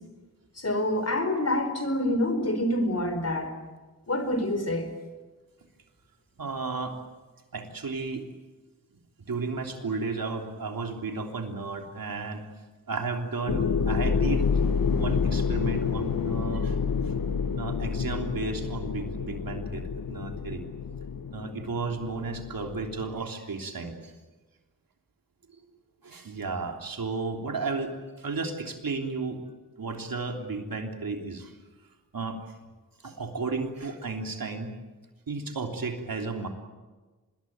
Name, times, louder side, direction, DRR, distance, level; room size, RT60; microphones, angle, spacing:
voice 1, 0.6-3.5 4.1-4.9, left 1 dB, 45° left, 9 dB, 4.6 m, -27 dB
voice 2, 6.4-7.0 7.5-8.3 9.3-12.4 12.9-14.5 15.0-16.8 17.5-19.8 20.1-20.6 21.3-24.1 26.0-29.4 29.8-31.5 32.1-32.4 33.0-34.7 35.3-36.5, right 4 dB, 85° right, 3 dB, 3.3 m, -33 dB
sound 1, 13.5-23.2, left 6 dB, 85° left, 1.1 m, -28 dB
26.0 x 21.5 x 9.3 m, 1.3 s
wide cardioid pair, 70°, 34 cm